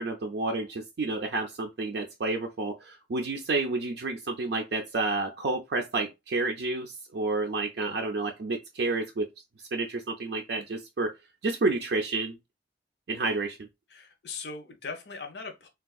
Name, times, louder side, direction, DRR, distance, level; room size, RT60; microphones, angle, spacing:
voice 1, 0.0-9.3 9.7-11.1 11.4-12.4 13.1-13.6, right 3 dB, 60° right, 0.4 m, -30 dB
voice 2, 13.9-15.7, left 4 dB, 65° left, 0.7 m, -39 dB
3.4 x 2.3 x 2.3 m
head